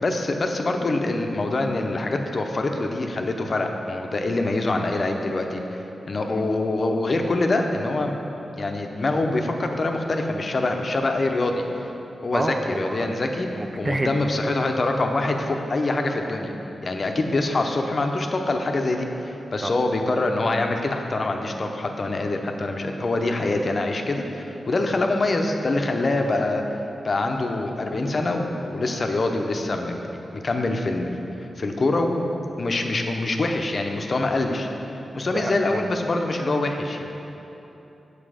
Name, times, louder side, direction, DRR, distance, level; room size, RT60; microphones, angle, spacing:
voice 1, 0.0-5.8 6.1-8.1 8.6-11.6 12.2-16.5 16.8-26.6 27.0-31.2 31.6-32.3 32.6-34.7 35.1-37.1, left 2 dB, 45° left, 3 dB, 0.7 m, -25 dB
voice 2, 12.3-13.1 13.6-14.1 16.9-17.0 19.6-19.7 35.1-35.9, right 2 dB, 25° right, 6 dB, 0.4 m, -28 dB
7.3 x 6.7 x 5.0 m, 3.0 s
wide cardioid pair, 90°, 0 cm